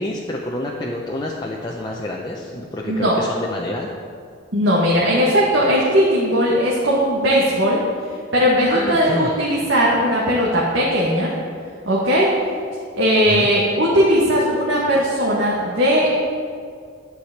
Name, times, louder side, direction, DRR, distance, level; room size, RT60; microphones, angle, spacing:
voice 1, 0.0-3.9 8.7-9.3 13.3-13.5, left 1 dB, 20° left, -3 dB, 0.8 m, -28 dB
voice 2, 2.9-3.2 4.5-7.8 8.3-11.3 11.9-12.3 12.9-16.2, equal, 65° right, -6 dB, 1.7 m, -18 dB
11.5 x 4.9 x 8.0 m, 2.2 s
head